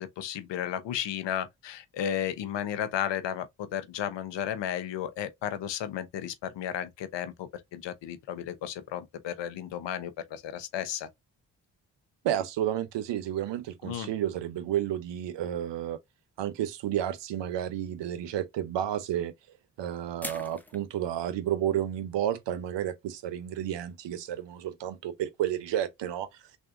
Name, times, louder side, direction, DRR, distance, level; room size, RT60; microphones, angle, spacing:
voice 1, 0.0-11.1 13.8-14.1, left 10 dB, 70° left, 0.7 m, -34 dB
voice 2, 12.2-16.0 16.4-19.3 19.8-26.3, right 11 dB, 70° right, 0.7 m, -31 dB
sound 1, 17.5-17.6 20.2-20.9, left 1 dB, 5° left, 0.7 m, -40 dB
3.4 x 2.6 x 2.5 m
supercardioid pair, 45°, 44 cm